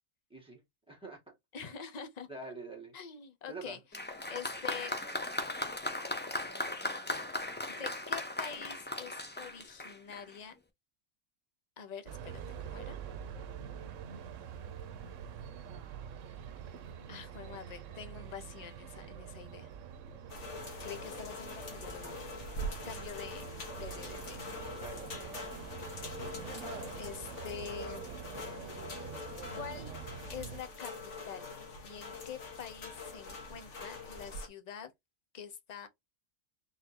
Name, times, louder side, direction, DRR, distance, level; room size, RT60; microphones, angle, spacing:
voice 1, 0.9-1.4 1.6-1.8 2.3-2.9 3.5-3.8 24.8-25.2, right 3 dB, 5° right, 2.1 m, -46 dB
voice 2, 1.5-2.3 2.9-3.8 4.3-5.0 7.7-10.5 11.8-12.4 12.6-13.0 17.1-19.7 20.8-22.2 22.8-23.4 23.7-24.5 26.9-28.2 29.5-29.9 30.3-31.5 31.8-34.9 35.3-35.9, left 7 dB, 40° left, 0.8 m, -45 dB
Applause, 3.9-10.4, left 1 dB, 10° left, 0.5 m, -37 dB
sound 1, 12.1-30.6, right 8 dB, 90° right, 1.0 m, -45 dB
sound 2, 20.3-34.5, left 2 dB, 70° left, 1.7 m, -44 dB
4.1 x 3.7 x 2.9 m
omnidirectional pair, 1.3 m